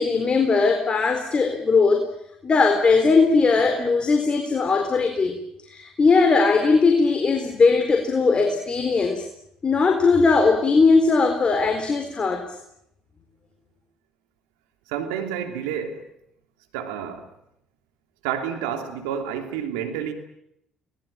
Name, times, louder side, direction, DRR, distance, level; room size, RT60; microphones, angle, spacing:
voice 1, 0.0-2.0 2.4-5.3 5.7-9.3 9.6-12.4, left 4 dB, 40° left, 5 dB, 4.1 m, -19 dB
voice 2, 14.9-16.0 16.7-17.3 18.2-20.1, right 8 dB, 85° right, 6 dB, 3.2 m, -29 dB
25.0 x 20.5 x 9.0 m, 0.78 s
hypercardioid pair, 60°, 3 cm